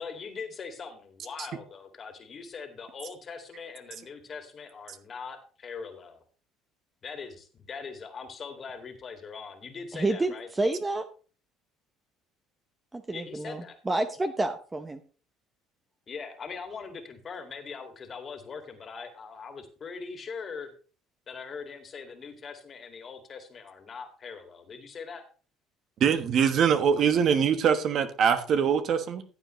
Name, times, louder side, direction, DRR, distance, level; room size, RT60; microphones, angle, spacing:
voice 1, 0.0-6.2 7.0-10.5 13.1-13.8 16.1-20.7 21.3-25.2, left 5 dB, 35° left, 6 dB, 2.2 m, -41 dB
voice 2, 9.9-11.0 12.9-15.0, right 2 dB, 15° right, 8 dB, 0.8 m, -29 dB
voice 3, 26.0-29.2, right 7 dB, 55° right, 9 dB, 1.2 m, -23 dB
14.5 x 7.9 x 3.2 m, 0.38 s
cardioid pair, 105°, 0 cm